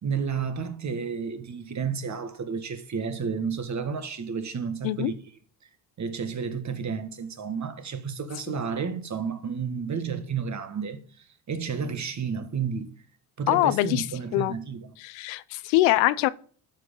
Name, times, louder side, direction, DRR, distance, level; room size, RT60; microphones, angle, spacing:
voice 1, 0.0-5.1 6.0-12.9 13.4-14.9, right 6 dB, 35° right, 1.7 m, -31 dB
voice 2, 13.5-14.0 14.3-14.5 15.0-16.3, left 17 dB, 85° left, 0.8 m, -23 dB
13.0 x 5.2 x 5.4 m
supercardioid pair, 85°, 47 cm